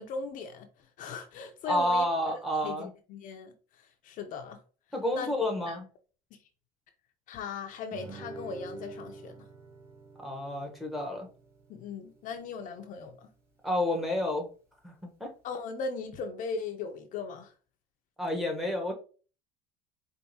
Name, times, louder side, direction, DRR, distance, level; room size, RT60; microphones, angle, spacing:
voice 1, 0.0-4.6 5.1-5.3 5.7-5.8 7.3-9.4 11.7-13.3 15.4-17.5, left 4 dB, 50° left, 0.6 m, -38 dB
voice 2, 1.7-2.9 4.9-5.8 10.2-11.3 13.6-14.5 14.8-15.3 18.2-18.9, left 1 dB, ahead, 1.0 m, -30 dB
Guitar, 7.9-13.0, right 3 dB, 15° right, 1.8 m, -47 dB
4.5 x 2.5 x 2.7 m
cardioid pair, 120°, 17 cm